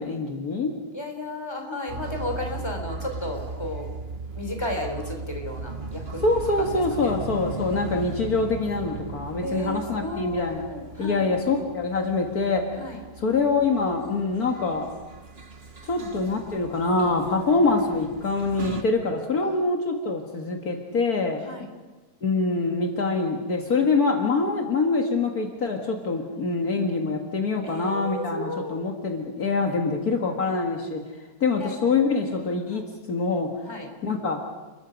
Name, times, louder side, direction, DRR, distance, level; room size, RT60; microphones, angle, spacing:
voice 1, 0.0-0.8 6.2-10.6 11.0-12.8 13.2-14.9 15.8-21.4 22.2-31.0 31.4-33.5 34.0-34.5, left 3 dB, 65° left, 3 dB, 2.2 m, -25 dB
voice 2, 0.9-3.9 4.3-6.2 6.6-7.1 9.4-11.3 12.8-13.0 15.9-16.1 19.4-19.7 20.2-20.9 21.4-21.7 26.3-26.5 27.6-28.8 29.6-30.0 31.6-31.8 32.7-32.9 33.6-33.9, left 1 dB, 15° left, 3 dB, 3.7 m, -34 dB
sound 1, 1.9-18.8, right 4 dB, 40° right, 1.5 m, -37 dB
30.0 x 21.5 x 5.2 m, 1.2 s
omnidirectional pair, 1.8 m